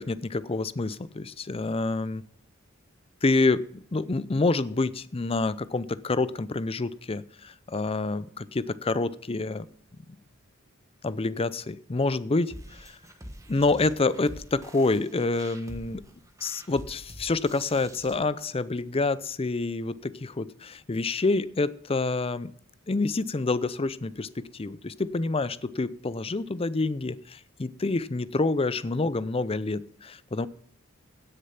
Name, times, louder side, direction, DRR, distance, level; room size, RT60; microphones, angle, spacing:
voice 1, 0.0-2.2 3.2-9.7 11.0-12.9 13.5-16.0 16.4-22.5 22.9-30.5, left 3 dB, 30° left, 17 dB, 0.5 m, -27 dB
sound 1, 12.5-18.1, equal, 15° right, 1.4 m, -46 dB
16.5 x 6.7 x 5.8 m, 0.64 s
head